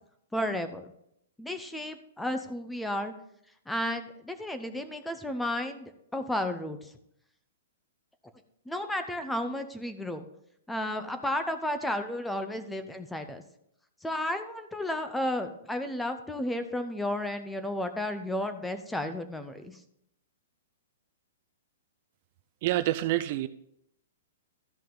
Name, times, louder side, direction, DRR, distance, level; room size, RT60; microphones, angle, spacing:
voice 1, 0.3-0.9 1.4-3.1 3.7-6.9 8.7-10.2 10.7-13.4 14.0-19.8, left 1 dB, 5° left, 9 dB, 0.6 m, -33 dB
voice 2, 22.6-23.5, right 15 dB, 40° right, 13 dB, 0.4 m, -27 dB
13.0 x 5.4 x 3.8 m, 0.75 s
hypercardioid pair, 160°, 0 cm